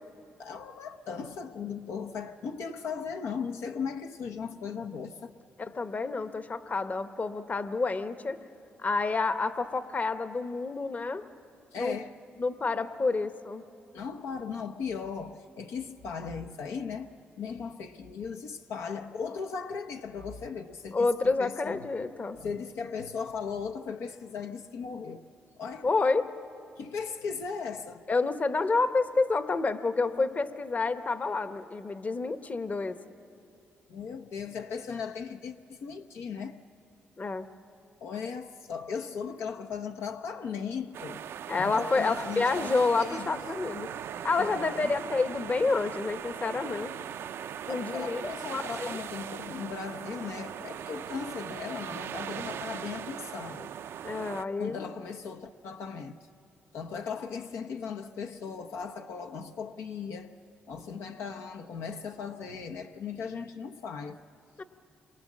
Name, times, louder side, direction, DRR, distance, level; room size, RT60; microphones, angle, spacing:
voice 1, 0.4-5.3 11.7-12.1 13.9-17.1 17.4-21.9 22.4-25.3 25.6-25.9 26.8-28.0 33.9-36.6 38.0-41.2 41.6-43.4 44.4-44.9 47.7-53.7 54.6-56.2 56.7-60.3 60.7-64.2, left 6 dB, 80° left, 0.9 m, -37 dB
voice 2, 5.6-8.4 8.8-11.2 11.7-12.0 12.4-13.6 20.9-22.4 25.8-26.3 28.1-33.0 37.2-37.5 41.5-43.9 44.2-46.9 47.7-49.0 54.0-54.8 64.6-64.7, left 3 dB, 35° left, 1.1 m, -29 dB
sound 1, 40.9-54.4, right 9 dB, 70° right, 0.5 m, -39 dB
27.5 x 22.5 x 7.3 m
cardioid pair, 70°, 4 cm